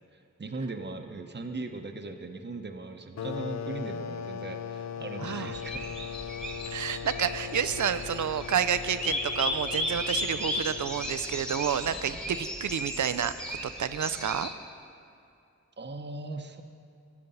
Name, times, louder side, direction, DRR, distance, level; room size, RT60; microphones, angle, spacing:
voice 1, 0.1-6.0 11.9-12.4 15.8-16.6, right 3 dB, 35° right, 5 dB, 0.8 m, -39 dB
sound 1, 3.2-11.5, left 7 dB, 65° left, 0.4 m, -39 dB
voice 2, 5.2-5.5 6.7-13.3 13.6-14.5, right 8 dB, 80° right, 13 dB, 0.5 m, -30 dB
sound 2, 5.5-14.5, equal, ahead, 1.4 m, -35 dB
14.5 x 7.7 x 5.5 m, 2.5 s
cardioid pair, 45°, 29 cm